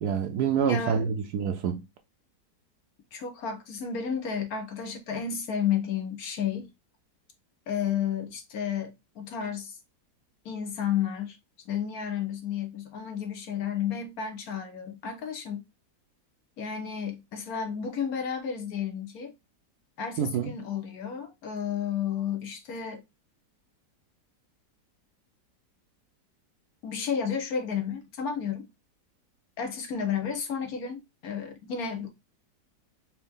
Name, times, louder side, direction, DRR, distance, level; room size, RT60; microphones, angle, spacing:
voice 1, 0.0-1.8 20.2-20.5, right 7 dB, 75° right, 1.1 m, -27 dB
voice 2, 0.6-1.2 3.1-6.7 7.7-9.8 10.4-11.4 11.6-15.6 16.6-19.3 20.0-23.0 26.8-28.7 29.6-32.1, left 7 dB, 65° left, 1.4 m, -32 dB
4.5 x 2.9 x 3.5 m
omnidirectional pair, 1.8 m